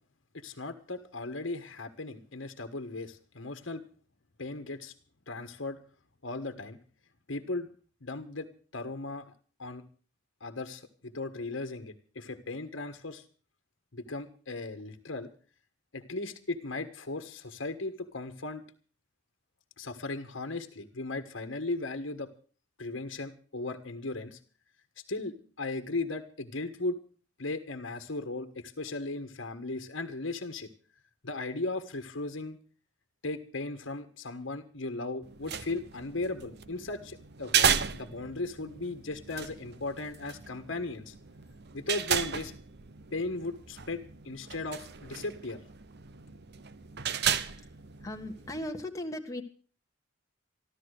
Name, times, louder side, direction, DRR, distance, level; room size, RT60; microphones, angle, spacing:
voice 1, 0.3-3.8 4.4-4.9 5.3-5.8 6.2-6.8 7.3-7.7 8.0-8.5 8.7-9.3 9.6-9.8 10.4-13.2 13.9-15.3 15.9-18.6 19.8-22.3 22.8-24.4 25.1-27.0 27.4-30.7 31.2-32.6 33.2-41.1 41.7-42.5 43.1-45.6, left 2 dB, 70° left, 8 dB, 1.5 m, -37 dB
sound 1, 35.2-48.7, right 8 dB, 60° right, 0.8 m, -34 dB
voice 2, 47.3-47.7 48.0-49.4, left 1 dB, 15° left, 3 dB, 1.5 m, -38 dB
14.0 x 13.0 x 6.5 m, 0.40 s
head